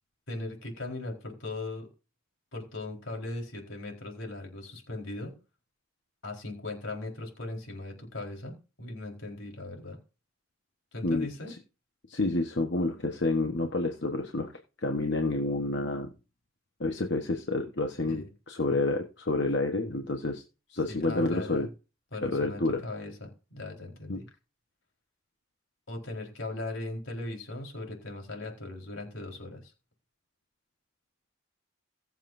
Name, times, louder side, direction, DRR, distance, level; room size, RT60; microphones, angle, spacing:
voice 1, 0.3-1.9 2.5-5.3 6.2-10.0 10.9-11.5 18.0-18.3 20.9-21.7 22.1-24.2 25.9-29.7, left 2 dB, 80° left, 1 dB, 4.4 m, -38 dB
voice 2, 12.1-14.5 14.8-16.1 16.8-20.4 20.7-21.7 22.2-22.8 24.1-24.2, left 2 dB, 60° left, 3 dB, 1.2 m, -29 dB
22.0 x 7.4 x 2.7 m, 0.32 s
head